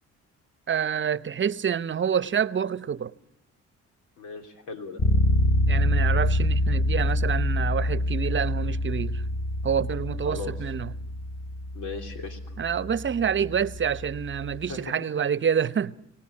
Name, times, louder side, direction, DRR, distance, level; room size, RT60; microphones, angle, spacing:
voice 1, 0.7-3.1 5.6-9.2 9.6-10.9 12.6-16.0, right 8 dB, 40° right, 0.9 m, -27 dB
voice 2, 4.2-5.0 10.2-10.5 11.7-12.4 14.7-14.9, left 4 dB, 85° left, 3.3 m, -37 dB
Bass guitar, 5.0-14.7, left 1 dB, 45° left, 2.8 m, -26 dB
24.0 x 18.5 x 9.8 m
cardioid pair, 90°, 30 cm